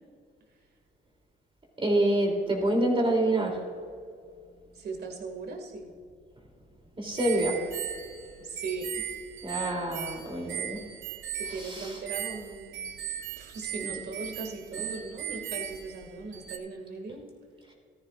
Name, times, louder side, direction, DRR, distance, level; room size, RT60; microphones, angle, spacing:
voice 1, 1.8-3.6 7.0-7.6 9.4-10.8 11.6-11.9 13.8-13.9, right 1 dB, 25° right, 0 dB, 3.0 m, -27 dB
voice 2, 4.7-5.9 8.4-9.1 11.3-12.8 13.4-17.2, right 4 dB, 55° right, 3 dB, 2.2 m, -38 dB
sound 1, 7.2-16.6, right 9 dB, 80° right, 0.9 m, -38 dB
15.0 x 13.5 x 2.5 m, 2.2 s
cardioid pair, 90°, 20 cm